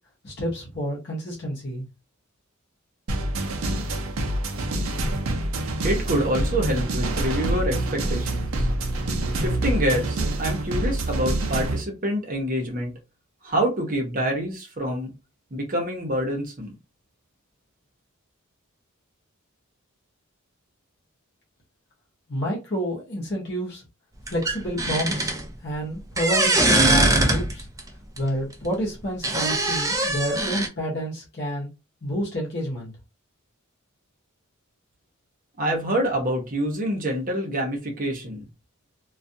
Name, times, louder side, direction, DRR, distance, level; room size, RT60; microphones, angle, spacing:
voice 1, 0.2-1.9 22.3-23.8 24.3-25.3 25.6-27.7 28.2-31.7 32.0-32.9, equal, 50° left, 0.9 m, -29 dB
sound 1, 3.1-11.8, right 1 dB, 70° right, 0.5 m, -26 dB
voice 2, 5.8-8.7 9.3-12.9 13.4-15.1 15.5-16.7 35.6-38.5, equal, 40° right, 0.8 m, -26 dB
sound 2, 24.3-25.5 26.2-27.8 28.2-28.3 29.2-30.7, right 2 dB, 15° right, 0.3 m, -21 dB
2.3 x 2.3 x 2.6 m
head